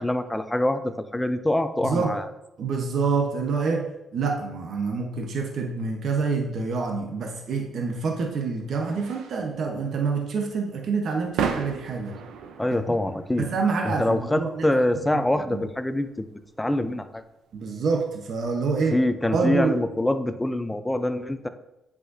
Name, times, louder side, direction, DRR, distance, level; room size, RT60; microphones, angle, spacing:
voice 1, 0.0-2.3 12.6-13.5 13.8-16.3 16.6-17.2 18.9-21.5, left 1 dB, 10° left, 10 dB, 0.5 m, -25 dB
voice 2, 1.8-2.2 2.6-12.2 13.4-14.7 15.1-15.6 17.5-19.0 19.3-19.7, right 4 dB, 60° right, 2 dB, 0.9 m, -27 dB
sound 1, 7.5-18.8, right 6 dB, 85° right, 0.7 m, -38 dB
7.9 x 6.0 x 2.7 m, 0.88 s
cardioid pair, 90°, 0 cm